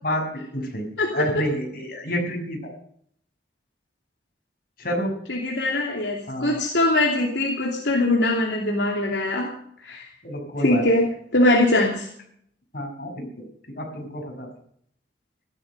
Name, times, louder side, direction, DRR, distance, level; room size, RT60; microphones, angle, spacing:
voice 1, 0.5-2.8 4.8-5.1 6.3-6.6 10.2-10.8 12.7-13.3 13.7-14.5, equal, 55° left, 2 dB, 6.1 m, -29 dB
voice 2, 5.3-9.5 9.8-10.1 10.6-12.1, left 1 dB, 80° left, -1 dB, 2.9 m, -22 dB
15.0 x 12.5 x 6.8 m, 0.65 s
head